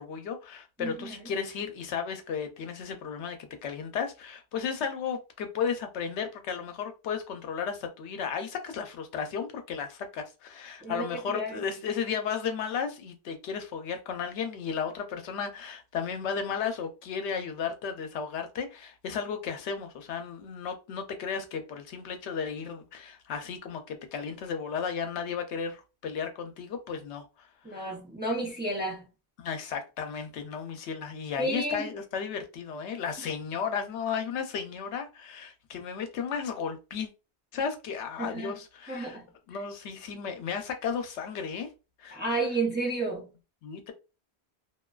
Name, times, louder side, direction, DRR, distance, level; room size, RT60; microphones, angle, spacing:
voice 1, 0.0-27.8 29.4-37.1 37.5-39.2 39.5-41.7 42.0-42.2 43.6-43.9, left 6 dB, 90° left, 0.9 m, -34 dB
voice 2, 0.8-1.2 10.8-11.6 27.6-29.0 31.4-31.9 38.2-38.6 38.9-39.3 42.1-43.3, right 2 dB, 10° right, 0.6 m, -31 dB
2.5 x 2.2 x 2.3 m
omnidirectional pair, 1.1 m